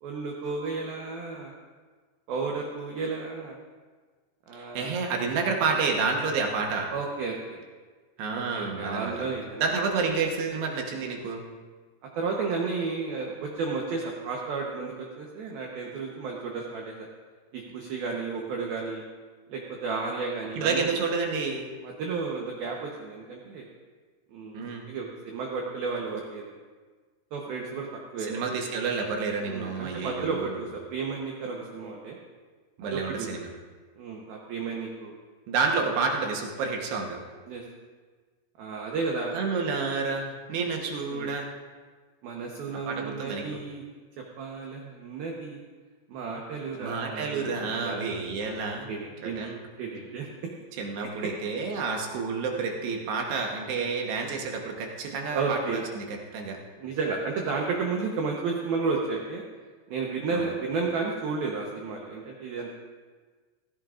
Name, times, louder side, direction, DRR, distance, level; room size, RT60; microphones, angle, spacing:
voice 1, 0.0-1.5 2.3-3.6 4.5-4.9 6.9-7.6 8.5-9.7 12.2-17.1 17.5-19.0 19.5-20.9 21.8-23.7 24.3-26.5 27.3-27.9 28.1-28.3 29.4-32.2 32.8-33.3 34.0-35.1 35.8-36.0 37.5-37.6 38.6-39.4 41.1-41.3 42.2-43.8 44.2-45.6 46.1-48.0 48.9-49.4 49.8-50.3 55.3-55.8 56.8-59.4 59.9-62.7, right 4 dB, 90° right, -1 dB, 2.1 m, -32 dB
voice 2, 4.5-6.9 8.2-9.2 9.6-11.4 20.6-21.7 24.5-24.9 28.2-30.6 32.8-33.5 35.5-37.2 39.3-41.5 42.7-43.6 46.8-48.9 49.2-49.6 50.8-56.6 60.3-60.5, right 4 dB, 70° right, 1 dB, 2.7 m, -29 dB
16.5 x 16.0 x 2.5 m, 1.5 s
omnidirectional pair, 5.9 m